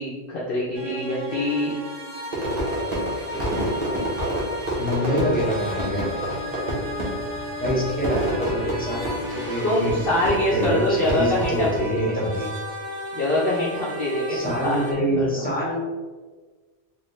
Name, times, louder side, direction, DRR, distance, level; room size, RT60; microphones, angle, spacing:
voice 1, 0.0-1.7 9.6-12.2 13.1-15.5, left 1 dB, 55° left, -5 dB, 0.8 m, -24 dB
sound 1, 0.7-14.9, right 1 dB, 70° right, 1.3 m, -35 dB
Fireworks, 2.3-11.8, right 1 dB, 35° right, 1.2 m, -29 dB
voice 2, 4.8-6.1 7.6-9.0 9.3-9.9 10.5-12.5 14.3-15.8, equal, 10° left, -6 dB, 0.9 m, -26 dB
Wind instrument woodwind instrument, 6.3-11.0, left 2 dB, 85° left, 1.1 m, -38 dB
4.5 x 2.3 x 3.1 m, 1.4 s
omnidirectional pair, 1.2 m